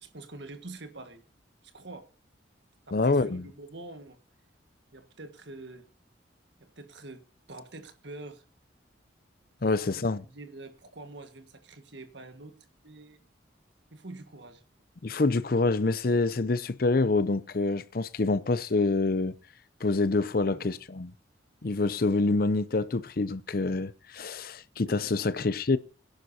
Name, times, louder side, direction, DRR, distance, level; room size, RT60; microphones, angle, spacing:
voice 1, 0.0-1.2 1.6-2.1 2.9-4.2 4.9-5.9 6.6-8.4 9.7-12.5 12.8-13.2 13.9-14.6 20.5-20.8 24.8-25.2, right 2 dB, 65° right, 1.6 m, -46 dB
voice 2, 2.9-3.5 9.6-10.2 15.0-19.3 19.8-21.1 21.6-25.8, left 3 dB, 50° left, 0.6 m, -26 dB
23.5 x 10.5 x 2.8 m
head